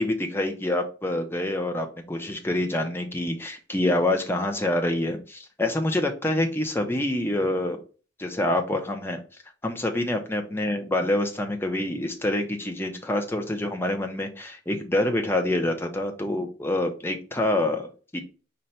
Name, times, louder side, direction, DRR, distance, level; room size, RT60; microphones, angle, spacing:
voice 1, 0.0-7.8 8.2-9.2 9.6-18.2, left 1 dB, 10° left, 4 dB, 0.6 m, -26 dB
5.2 x 2.2 x 4.2 m, 0.37 s
head